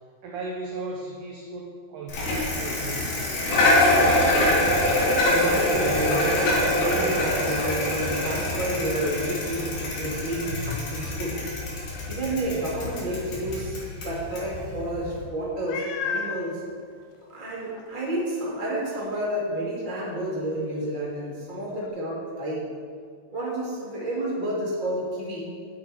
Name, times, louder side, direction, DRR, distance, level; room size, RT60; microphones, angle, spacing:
voice 1, 0.2-3.3, right 2 dB, 75° right, 0 dB, 1.9 m, -36 dB
Bicycle, 2.1-15.2, left 1 dB, 60° left, 4.2 m, -25 dB
voice 2, 5.2-11.4 12.1-13.8 14.0-16.6 17.3-22.7 23.3-25.5, right 1 dB, 15° right, -6 dB, 2.1 m, -30 dB
Meow, 15.7-16.4 17.2-17.3 17.7-17.9 21.8-21.9, left 5 dB, 80° left, 2.7 m, -31 dB
10.0 x 9.9 x 4.5 m, 2.1 s
omnidirectional pair, 4.8 m